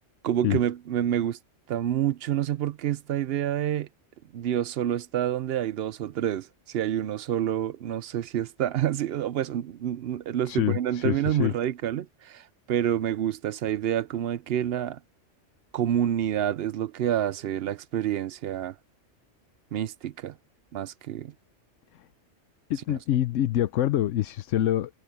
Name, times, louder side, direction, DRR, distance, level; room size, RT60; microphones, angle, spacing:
voice 1, 0.2-1.4 1.7-3.9 4.3-15.0 15.7-18.7 19.7-20.4 20.7-21.3 22.9-23.0, right 11 dB, 65° right, 0.8 m, -28 dB
voice 2, 10.5-11.5 22.7-24.9, left 12 dB, 85° left, 1.0 m, -25 dB
omnidirectional pair, 1.2 m